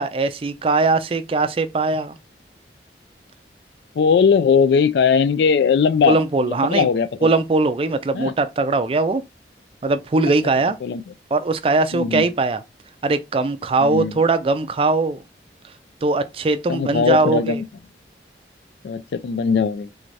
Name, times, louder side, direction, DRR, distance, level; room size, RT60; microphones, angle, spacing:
voice 1, 0.0-2.2 6.1-6.9 7.2-9.2 9.8-10.8 11.3-12.6 13.0-15.2 16.0-17.6, right 3 dB, 30° right, 0.3 m, -20 dB
voice 2, 4.0-7.1 8.1-8.3 10.8-11.0 11.9-12.3 13.8-14.2 16.7-17.6 18.8-19.9, left 6 dB, 70° left, 0.3 m, -19 dB
3.4 x 3.2 x 2.5 m
head